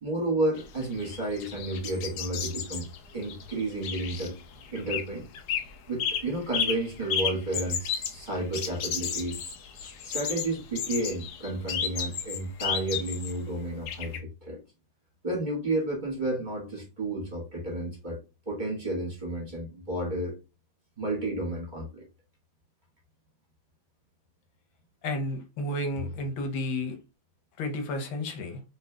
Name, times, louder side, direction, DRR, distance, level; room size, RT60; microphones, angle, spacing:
voice 1, 0.0-2.9 3.1-4.4 4.7-5.3 5.9-9.4 10.0-14.6 15.2-18.2 18.4-20.4 21.0-22.0, right 2 dB, 25° right, 1.4 m, -31 dB
sound 1, 0.6-5.1 5.3-5.7 6.0-13.4 13.9-14.2, left 7 dB, 65° left, 1.1 m, -33 dB
voice 2, 25.0-27.0 27.6-28.6, left 1 dB, 85° left, 1.7 m, -31 dB
5.5 x 3.1 x 2.3 m
omnidirectional pair, 2.1 m